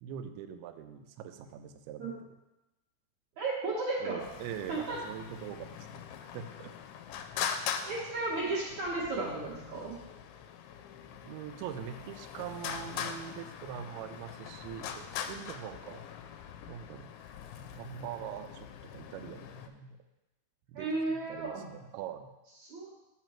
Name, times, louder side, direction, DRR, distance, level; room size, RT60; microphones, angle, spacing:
voice 1, 0.0-2.4 4.0-6.7 11.2-16.0 16.7-17.1 17.8-18.7 18.9-20.0 20.7-22.3, right 9 dB, 85° right, 8 dB, 2.5 m, -43 dB
voice 2, 3.4-4.2 4.7-5.0 7.8-9.9 20.7-21.6 22.6-22.9, right 3 dB, 60° right, -7 dB, 2.3 m, -34 dB
Traffic noise roadway noise, 4.2-19.7, left 8 dB, 85° left, 2.5 m, -42 dB
7.4 x 5.9 x 4.4 m, 0.99 s
omnidirectional pair, 4.5 m